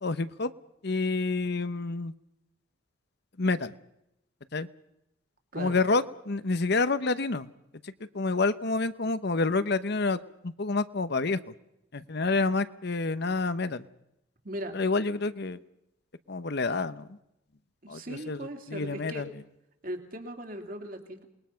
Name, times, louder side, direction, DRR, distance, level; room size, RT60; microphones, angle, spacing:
voice 1, 0.0-0.5 0.8-2.1 3.4-3.7 4.5-4.7 5.6-7.5 7.8-11.5 11.9-13.9 14.7-15.6 16.3-17.2 17.9-19.3, left 3 dB, 55° left, 13 dB, 0.9 m, -28 dB
voice 2, 14.4-14.8 17.8-19.3 19.8-21.3, right 1 dB, 45° right, 4 dB, 3.1 m, -38 dB
28.5 x 21.0 x 5.8 m, 0.82 s
head